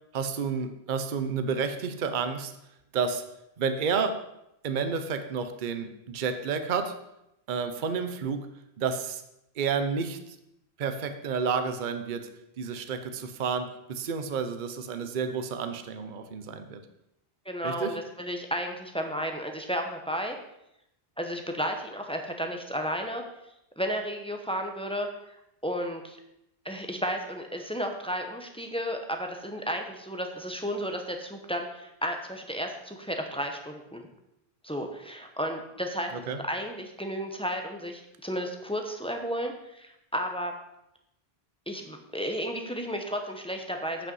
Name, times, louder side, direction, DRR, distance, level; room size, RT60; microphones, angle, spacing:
voice 1, 0.1-2.5 2.9-3.2 3.6-4.2 4.6-7.0 7.5-8.5 8.8-9.2 9.6-10.2 10.8-12.3 12.6-16.8 17.6-18.0 36.1-36.4, right 5 dB, 55° right, 8 dB, 0.8 m, -30 dB
voice 2, 17.5-20.3 21.2-23.2 23.8-25.1 25.6-26.2 26.6-34.0 34.6-36.1 36.4-40.5 41.7-44.1, equal, 5° left, 3 dB, 0.9 m, -33 dB
8.7 x 5.5 x 5.4 m, 0.83 s
omnidirectional pair, 1.1 m